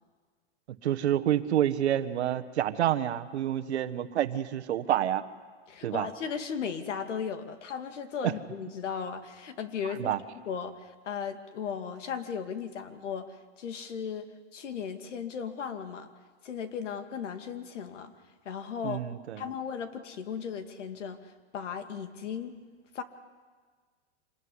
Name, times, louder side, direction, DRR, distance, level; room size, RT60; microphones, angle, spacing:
voice 1, 0.8-5.2 5.8-6.1 8.2-8.3 10.0-10.2 18.8-19.4, right 11 dB, 65° right, 10 dB, 1.4 m, -28 dB
voice 2, 5.7-16.1 16.4-18.1 18.4-19.0 19.4-22.6 22.9-23.0, left 7 dB, 90° left, 7 dB, 2.5 m, -36 dB
26.5 x 20.5 x 9.7 m, 1.5 s
supercardioid pair, 175°, 35 cm